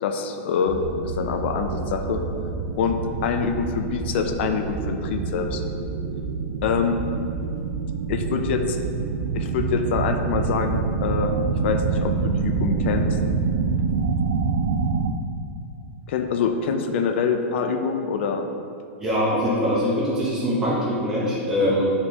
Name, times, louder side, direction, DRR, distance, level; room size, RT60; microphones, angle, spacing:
voice 1, 0.0-2.2 2.8-5.6 6.6-7.0 8.1-8.8 9.3-11.3 11.6-13.2 16.1-18.4, left 6 dB, 55° left, 5 dB, 0.5 m, -25 dB
sound 1, 0.7-15.1, right 5 dB, 70° right, 0.4 m, -26 dB
voice 2, 19.0-21.9, equal, 10° right, -8 dB, 1.0 m, -23 dB
8.7 x 4.2 x 2.9 m, 2.6 s
supercardioid pair, 165°, 7 cm